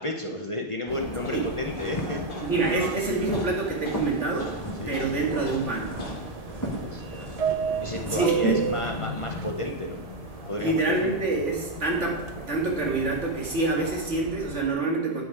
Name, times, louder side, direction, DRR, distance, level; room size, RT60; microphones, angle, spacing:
voice 1, 0.0-2.2 4.8-5.0 6.8-7.4 7.8-10.0 10.5-11.1, left 1 dB, 30° left, 2 dB, 0.7 m, -32 dB
sound 1, 0.9-14.1, left 4 dB, 50° left, 1.2 m, -40 dB
Subway metro underground, 0.9-14.7, right 7 dB, 50° right, 0.5 m, -36 dB
sound 2, 1.4-9.0, equal, 15° left, 2.1 m, -37 dB
voice 2, 2.4-4.5 4.9-5.9 8.1-8.7 10.6-15.2, right 3 dB, 75° right, -1 dB, 2.3 m, -26 dB
9.0 x 8.5 x 4.8 m, 1.0 s
omnidirectional pair, 1.2 m